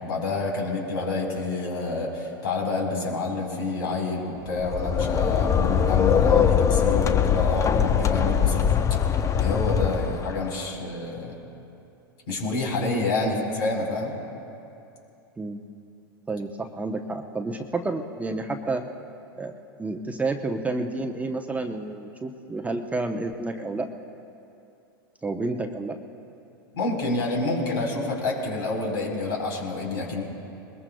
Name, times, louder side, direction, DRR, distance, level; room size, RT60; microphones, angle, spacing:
voice 1, 0.0-8.7 9.4-11.3 12.3-14.1 26.7-30.2, left 3 dB, 75° left, -1 dB, 4.3 m, -28 dB
sound 1, 4.5-10.5, left 8 dB, 25° left, 0.7 m, -22 dB
voice 2, 16.3-18.8 19.4-19.5 19.8-23.9 25.2-26.0, right 2 dB, 10° right, 5 dB, 0.8 m, -30 dB
21.5 x 21.0 x 2.3 m, 2.7 s
hypercardioid pair, 100°, 12 cm